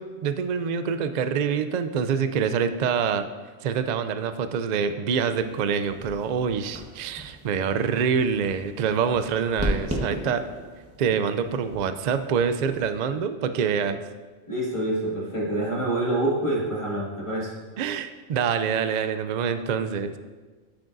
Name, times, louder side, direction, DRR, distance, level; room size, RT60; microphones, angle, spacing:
voice 1, 0.2-3.3 3.6-10.4 11.0-14.0 17.8-20.2, right 6 dB, 60° right, 10 dB, 0.4 m, -26 dB
sound 1, 5.3-13.0, right 1 dB, 10° right, 1.2 m, -36 dB
voice 2, 14.5-17.5, right 1 dB, 25° left, -5 dB, 2.0 m, -26 dB
13.0 x 6.2 x 2.6 m, 1.4 s
omnidirectional pair, 1.2 m